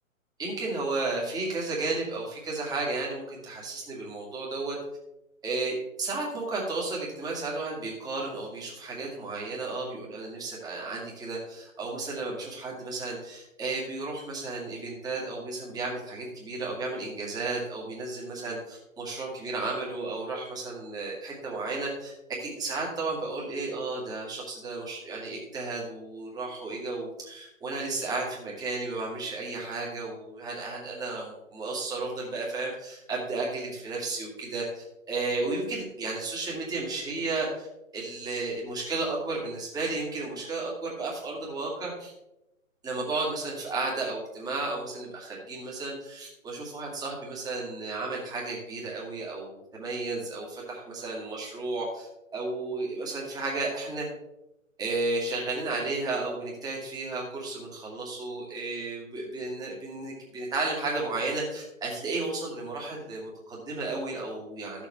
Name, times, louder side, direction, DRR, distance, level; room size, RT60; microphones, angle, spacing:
voice 1, 0.4-4.8 5.4-22.1 22.4-37.7 37.9-42.1 42.8-52.1 52.3-54.1 54.8-64.9, right 3 dB, 10° right, -3 dB, 2.2 m, -33 dB
14.5 x 7.0 x 3.2 m, 0.89 s
figure-of-eight pair, 125°, 40 cm